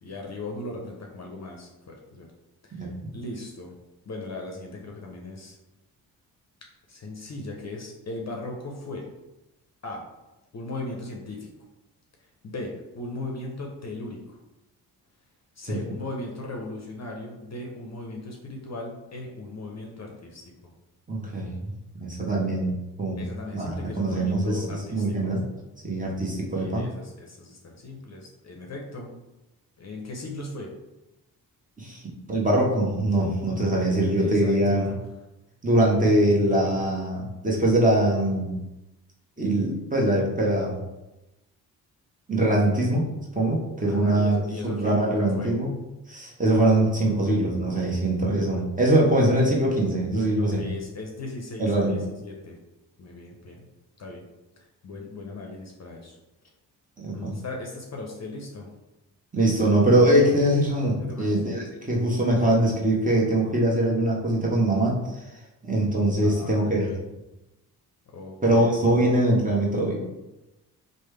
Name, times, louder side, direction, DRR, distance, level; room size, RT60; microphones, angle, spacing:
voice 1, 0.0-2.3 2.6-3.7 4.1-5.6 6.9-9.0 9.8-10.0 10.5-11.5 12.4-14.4 15.6-20.7 23.2-25.1 26.6-29.1 29.8-30.7 34.2-35.0 43.9-45.5 48.5-48.6 50.4-52.6 53.0-53.7 54.0-54.3 54.8-56.2 57.1-58.7 61.0-61.4 66.2-67.0 68.1-68.7, left 2 dB, 40° left, 0 dB, 0.7 m, -38 dB
voice 2, 2.8-3.1 15.7-15.8 21.1-21.7 22.0-22.7 23.0-23.2 23.5-25.4 25.8-26.8 31.8-32.0 32.3-34.9 35.6-38.6 39.4-40.8 42.3-43.1 43.3-45.7 46.1-50.7 51.6-52.0 57.0-57.4 59.3-65.0 65.6-66.9 68.4-70.0, right 1 dB, 20° right, -3 dB, 1.0 m, -22 dB
3.2 x 2.2 x 3.3 m, 0.99 s
supercardioid pair, 50°, 43 cm